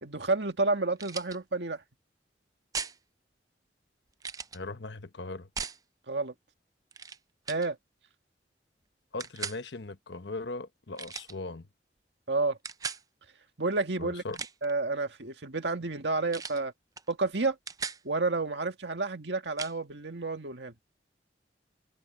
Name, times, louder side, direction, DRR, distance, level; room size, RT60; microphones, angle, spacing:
voice 1, 0.0-1.8 6.1-6.3 7.5-7.8 12.3-12.6 13.6-14.2 14.6-16.7 17.1-17.6 18.0-20.7, right 3 dB, 80° right, 1.9 m, -30 dB
sound 1, 1.0-1.4 2.7-3.0 4.2-4.6 5.6-5.8 6.9-7.2 7.5-7.7 9.2-9.6 11.0-11.3 12.6-13.0 14.2-14.7 16.3-16.6 17.0-17.1 17.4-18.0 19.6-19.7, right 5 dB, 20° right, 0.5 m, -37 dB
voice 2, 4.5-5.5 9.1-11.6 14.0-14.4, left 3 dB, 85° left, 1.1 m, -39 dB
open air
head